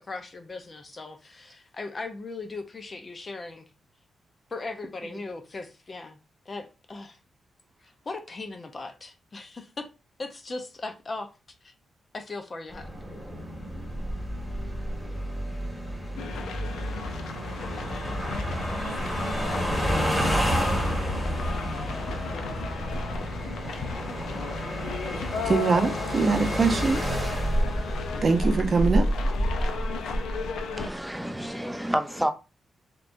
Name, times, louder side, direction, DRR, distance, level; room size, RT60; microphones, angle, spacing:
voice 1, 0.0-3.6 4.5-6.2 6.5-7.2 7.8-9.9 10.2-11.3 11.6-11.7 12.1-13.0, left 3 dB, 40° left, 0.7 m, -38 dB
sound 1, 12.7-30.9, equal, 15° left, 2.0 m, -30 dB
sound 2, 16.2-30.9, left 5 dB, 85° left, 0.4 m, -35 dB
voice 2, 25.4-27.0 28.2-29.1, right 4 dB, 50° right, 0.6 m, -23 dB
voice 3, 30.8-32.3, equal, 5° right, 0.6 m, -29 dB
3.3 x 3.0 x 2.6 m
cardioid pair, 65°, 0 cm